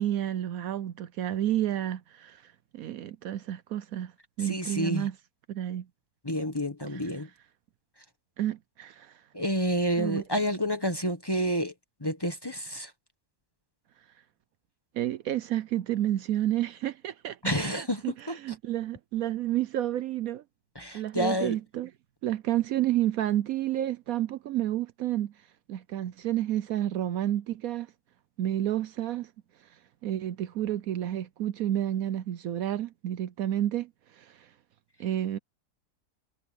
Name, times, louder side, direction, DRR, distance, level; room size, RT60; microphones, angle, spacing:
voice 1, 0.0-4.1 4.4-5.1 5.5-5.9 6.9-7.0 8.4-9.2 10.0-10.2 14.9-18.1 18.4-20.4 20.9-21.9 22.2-25.3 25.7-27.9 28.4-29.3 30.0-34.5 35.0-35.4, right 12 dB, 70° right, 1.0 m, -30 dB
voice 2, 4.4-5.1 6.2-7.3 9.3-11.7 12.0-12.9 17.4-18.4 20.7-21.6, equal, 15° left, 1.1 m, -29 dB
omnidirectional pair, 1.7 m